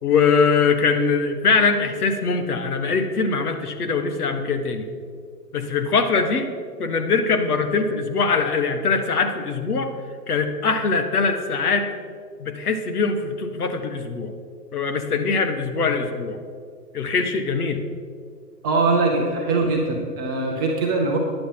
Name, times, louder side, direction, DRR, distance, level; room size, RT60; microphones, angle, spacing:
voice 1, 0.0-4.9 5.5-6.5 6.8-9.9 10.3-11.9 12.4-14.3 14.7-16.4 16.9-17.8, left 4 dB, 65° left, 7 dB, 1.4 m, -22 dB
voice 2, 18.6-21.2, right 3 dB, 15° right, -1 dB, 0.6 m, -22 dB
10.5 x 8.0 x 5.7 m, 2.1 s
figure-of-eight pair, 130°, 50 cm